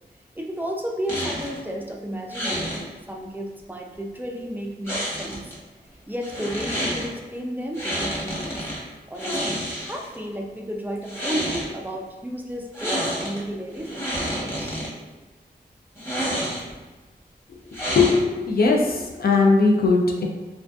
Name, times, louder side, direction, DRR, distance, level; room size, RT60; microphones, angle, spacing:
voice 1, 0.4-5.5 6.1-8.7 9.1-14.8, equal, 10° right, -1 dB, 0.3 m, -33 dB
sound 1, 1.1-1.6 2.3-2.8 4.8-5.5 6.2-7.1 7.7-8.8 9.1-10.1 11.0-11.7 12.7-13.4 13.7-14.9 16.0-16.8 17.7-18.4, equal, 15° left, 0.9 m, -29 dB
voice 2, 17.8-20.3, left 3 dB, 65° left, 0 dB, 0.4 m, -19 dB
2.5 x 2.4 x 2.2 m, 1.2 s
wide cardioid pair, 80°, 17 cm